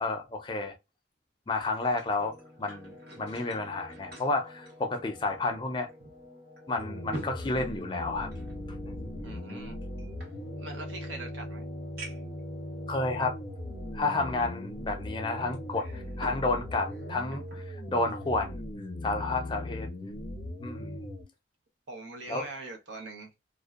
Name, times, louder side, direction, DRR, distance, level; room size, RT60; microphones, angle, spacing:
voice 1, 0.0-0.8 1.5-5.9 6.7-8.3 8.8-9.0 12.9-13.4 13.9-18.6 19.0-19.9 20.6-21.0 22.3-22.5, left 3 dB, 25° left, 0.4 m, -31 dB
sound 1, 1.5-5.6 5.9-6.0 6.6-8.6 9.4-10.9 11.4-11.5 12.0-12.4 13.2-13.3 15.5-16.5 16.8-17.7 18.1-18.3, right 1 dB, 55° right, 1.2 m, -46 dB
sound 2, 2.2-17.1, left 1 dB, 35° right, 1.1 m, -51 dB
sound 3, 6.8-21.2, left 1 dB, 85° left, 0.6 m, -39 dB
voice 2, 9.2-9.8 10.6-11.7 21.9-23.3, right 2 dB, 75° right, 0.7 m, -42 dB
2.5 x 2.2 x 2.3 m
head